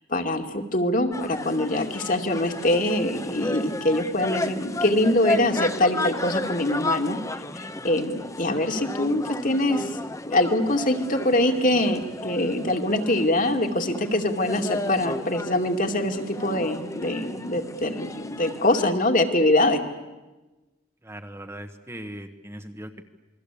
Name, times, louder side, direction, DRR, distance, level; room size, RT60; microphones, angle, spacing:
voice 1, 0.1-7.2 7.6-9.9 10.3-19.8, left 1 dB, 40° left, 5 dB, 2.4 m, -24 dB
sound 1, 1.1-18.9, left 2 dB, 15° left, 1.0 m, -33 dB
voice 2, 21.0-23.0, right 1 dB, 15° right, 6 dB, 1.2 m, -39 dB
28.0 x 22.5 x 8.5 m, 1.1 s
head